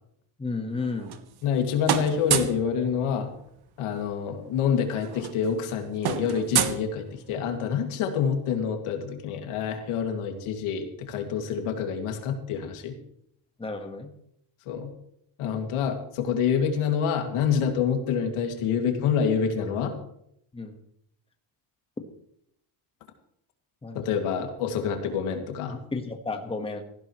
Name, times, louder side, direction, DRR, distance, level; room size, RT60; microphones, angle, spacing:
voice 1, 0.4-1.1 13.6-14.1 20.5-20.8 23.8-24.1 25.7-26.8, left 3 dB, 10° left, 4 dB, 1.4 m, -32 dB
sound 1, 0.8-1.6 1.8-2.7 4.0-4.1 4.4-4.6 4.9-7.5, right 9 dB, 50° right, 1.4 m, -29 dB
voice 2, 1.4-3.3 3.8-13.0 14.7-14.9 15.4-19.9 23.9-25.8, left 7 dB, 80° left, 4 dB, 2.5 m, -27 dB
18.0 x 15.5 x 3.2 m, 0.73 s
cardioid pair, 135°, 50 cm